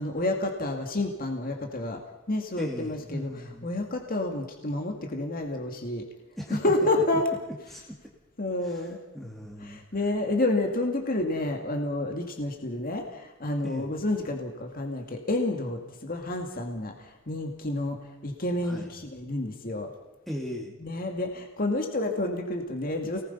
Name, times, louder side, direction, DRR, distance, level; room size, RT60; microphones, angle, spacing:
voice 1, 0.0-2.0 2.3-3.3 3.6-6.0 6.5-7.3 8.4-9.0 9.6-19.9 20.8-23.2, left 2 dB, 45° left, 3 dB, 2.2 m, -29 dB
voice 2, 2.6-3.7 6.4-6.6 7.7-8.0 8.6-9.8 13.6-13.9 18.6-18.9 20.3-20.7, equal, ahead, -1 dB, 2.3 m, -37 dB
29.0 x 19.0 x 5.6 m, 1.0 s
head